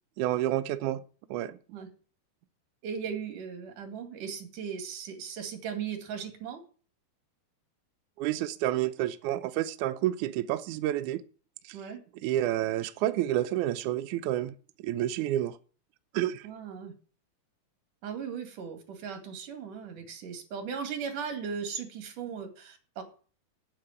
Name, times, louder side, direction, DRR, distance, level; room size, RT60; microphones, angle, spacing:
voice 1, 0.2-1.0 1.3-1.6 8.2-11.2 12.2-14.5 14.8-15.5 16.1-16.4, right 13 dB, 85° right, 11 dB, 1.7 m, -29 dB
voice 2, 2.8-6.6 11.7-12.0 16.4-16.9 18.0-23.0, right 7 dB, 60° right, 5 dB, 3.5 m, -37 dB
8.5 x 8.4 x 7.9 m, 0.40 s
omnidirectional pair, 4.3 m